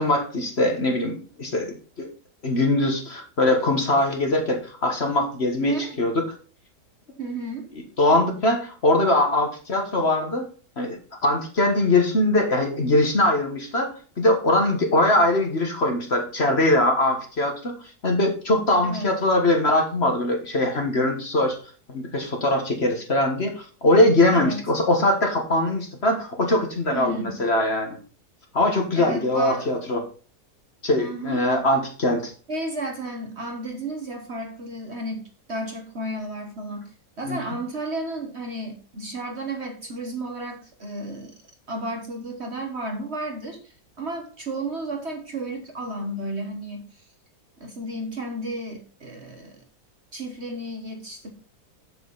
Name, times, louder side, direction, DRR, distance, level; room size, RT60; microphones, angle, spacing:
voice 1, 0.0-2.1 2.4-6.3 8.0-10.5 10.8-17.7 18.0-21.6 21.9-28.0 28.5-30.0 30.8-32.3 37.2-37.4, left 1 dB, 40° left, 3 dB, 1.7 m, -22 dB
voice 2, 5.6-6.0 7.2-7.7 18.8-19.1 24.3-24.6 26.9-27.4 28.9-29.7 31.0-31.4 32.5-35.2 35.5-36.8 37.2-41.3 41.7-47.0 47.6-49.6 50.1-51.3, right 2 dB, 45° right, 4 dB, 1.4 m, -32 dB
7.7 x 7.7 x 4.0 m, 0.38 s
omnidirectional pair, 1.8 m